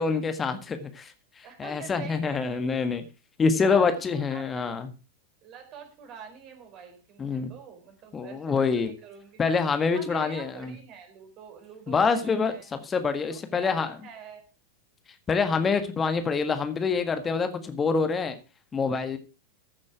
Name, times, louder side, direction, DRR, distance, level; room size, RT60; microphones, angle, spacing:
voice 1, 0.0-3.0 3.4-4.9 7.2-7.5 8.1-8.9 9.4-10.7 11.9-13.9 15.3-18.4 18.7-19.2, left 5 dB, 20° left, 9 dB, 1.6 m, -26 dB
voice 2, 1.4-2.9 3.4-4.7 5.4-9.4 9.9-12.7 13.3-14.4, right 7 dB, 35° right, 6 dB, 4.1 m, -46 dB
14.5 x 7.4 x 4.8 m, 0.32 s
figure-of-eight pair, 90°, 0 cm